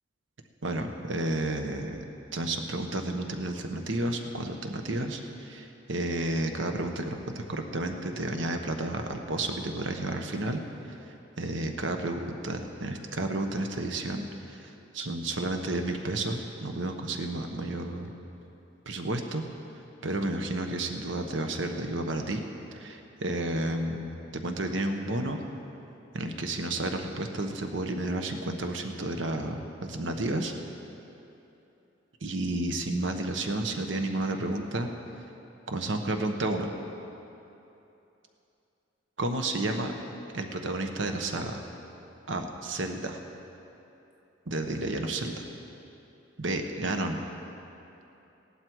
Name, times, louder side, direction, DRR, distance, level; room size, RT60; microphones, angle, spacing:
voice 1, 0.6-2.0 2.3-10.6 11.1-18.1 18.9-19.4 20.0-22.4 22.7-25.4 26.1-30.5 32.2-34.9 35.7-36.7 39.2-39.9 40.3-41.6 42.3-43.2 44.5-45.4 46.4-47.2, right 2 dB, 85° right, 5 dB, 1.1 m, -31 dB
16.5 x 11.5 x 4.7 m, 2.9 s
head